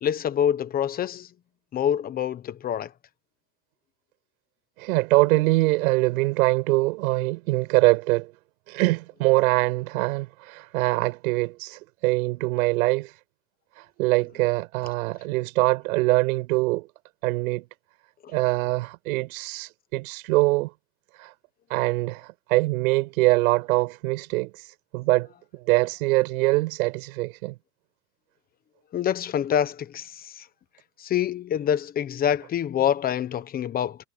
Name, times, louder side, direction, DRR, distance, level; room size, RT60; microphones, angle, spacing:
voice 1, 0.0-1.3 1.7-2.9 28.9-30.4 31.0-34.0, left 9 dB, 20° left, 1.1 m, -26 dB
voice 2, 4.8-8.3 8.7-13.2 13.8-16.9 17.2-17.7 18.3-20.7 21.1-21.3 21.7-27.6, right 21 dB, 60° right, 7.3 m, -23 dB
supercardioid pair, 155°, 48 cm